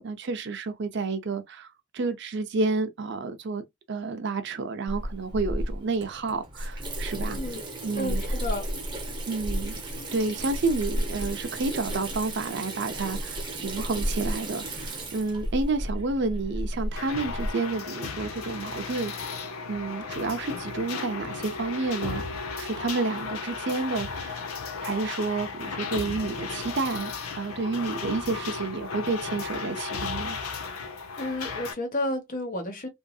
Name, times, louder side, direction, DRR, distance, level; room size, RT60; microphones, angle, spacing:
voice 1, 0.0-1.7 1.9-7.4 7.8-8.2 9.3-9.7 10.1-19.4 19.7-22.2 22.6-24.4 24.8-30.4, right 3 dB, 55° right, 0.6 m, -30 dB
Water tap faucet / Sink (filling or washing), 4.9-17.5, equal, 20° right, 0.8 m, -33 dB
voice 2, 7.3-8.7 31.2-32.9, left 1 dB, 35° left, 1.0 m, -32 dB
sound 1, 17.0-31.7, left 4 dB, 80° left, 0.7 m, -35 dB
3.0 x 2.7 x 2.3 m
head